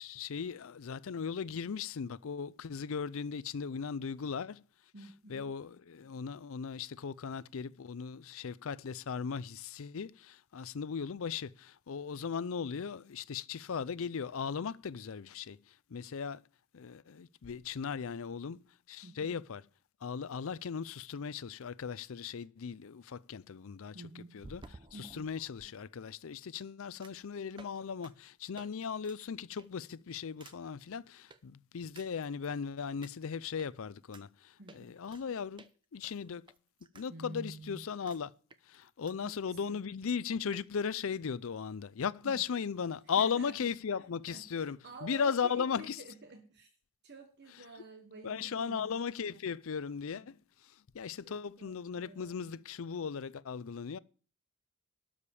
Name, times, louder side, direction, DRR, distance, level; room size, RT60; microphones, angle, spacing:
voice 1, 0.0-4.6 5.3-16.4 16.7-19.6 20.0-35.6 35.9-36.5 36.9-38.3 38.7-46.0 48.2-50.4 50.6-54.0, left 6 dB, 60° left, 0.5 m, -37 dB
voice 2, 4.9-5.5 19.0-19.4 23.9-24.4 24.9-25.3 34.6-35.0 37.1-37.8 39.2-39.3 39.6-39.8 42.2-42.4 43.2-43.7 44.3-46.7 47.0-48.9 50.1-50.2 51.2-52.4, right 2 dB, 50° right, 1.2 m, -49 dB
sound 1, 24.4-25.7 27.0-27.3 27.6-27.8 28.0-28.1 28.6-28.7 29.0-29.2 29.6-29.9 30.4-30.6 31.3-31.4 32.0-32.6 33.0-33.1 33.6-33.7 34.1-34.2 34.7-35.2 35.6-35.7 36.0-37.1 37.4-37.5 38.1-38.2 38.5-39.2 39.5-39.6 39.8-39.9 40.1-40.2 40.5-40.7, right 3 dB, 20° right, 0.6 m, -54 dB
12.5 x 5.0 x 8.3 m
head